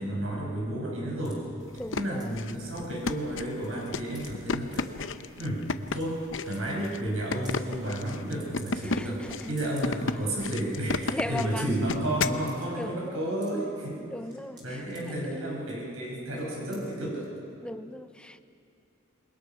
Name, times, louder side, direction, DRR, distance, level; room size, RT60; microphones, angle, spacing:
voice 1, 0.0-1.4 1.9-4.9 5.4-5.7 5.9-9.2 9.5-14.0 14.6-17.3, right 1 dB, 90° right, -3 dB, 6.0 m, -32 dB
sound 1, 1.2-1.4 2.2-2.3 2.6-3.2 3.5-4.3 4.7-4.9 5.5-5.6 5.9-6.0 6.4-6.6 6.8-6.9 7.3-7.6 8.4-9.1 9.4-10.0 10.4-10.5 10.7-11.1 11.6-11.8 12.5-12.7 13.1-13.8 14.3-15.0 15.6-15.9 16.3-16.4 16.7-16.9 17.2-17.3, right 2 dB, 20° right, 4.9 m, -51 dB
sound 2, 1.7-12.4, left 4 dB, 65° left, 0.7 m, -33 dB
voice 2, 1.8-2.4 8.8-9.7 11.1-11.8 12.8-13.2 14.1-14.8 17.6-18.4, left 1 dB, 5° left, 10 dB, 0.6 m, -37 dB
27.5 x 22.0 x 5.8 m, 2.7 s
head